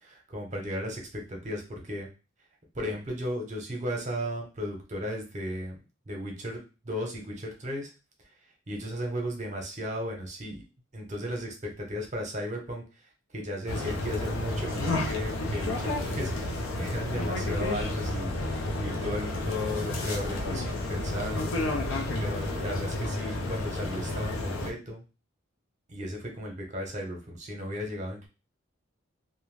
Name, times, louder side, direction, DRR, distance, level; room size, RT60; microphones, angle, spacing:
voice 1, 0.0-2.1 2.7-5.8 6.1-7.9 8.3-8.4 8.7-10.6 10.9-21.6 21.9-25.0 25.9-28.3, equal, 35° right, 2 dB, 0.7 m, -35 dB
sound 1, 13.7-24.7, left 2 dB, 70° left, 0.6 m, -31 dB
2.5 x 2.1 x 3.2 m, 0.31 s
head